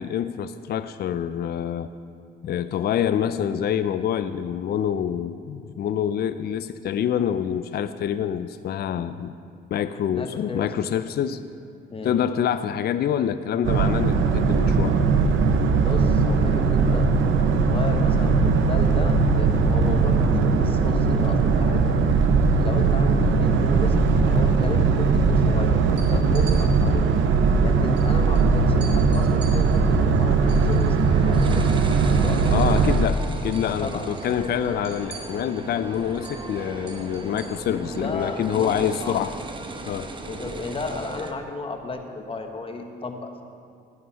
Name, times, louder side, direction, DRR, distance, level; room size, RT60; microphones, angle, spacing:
voice 1, 0.0-1.9 2.4-9.3 9.7-11.4 12.0-15.0 32.5-39.3 39.9-40.1, left 9 dB, 55° left, 11 dB, 0.4 m, -26 dB
voice 2, 10.1-10.7 11.9-12.2 15.7-17.1 17.5-21.9 22.6-27.1 27.6-31.8 32.0-32.9 33.6-34.1 37.7-39.2 40.3-43.4, left 3 dB, 25° left, 4 dB, 1.2 m, -33 dB
Boat Water vehicle, 13.6-33.1, right 4 dB, 75° right, 0.8 m, -19 dB
sound 1, 25.8-26.6 28.0-28.1 28.3-28.5 28.8-31.6 31.9-33.1 33.3-33.7 34.0-38.1, right 5 dB, 55° right, 2.8 m, -45 dB
sound 2, 30.5-41.3, right 2 dB, 25° right, 0.9 m, -37 dB
9.5 x 9.4 x 5.6 m, 2.3 s
cardioid pair, 90°, 20 cm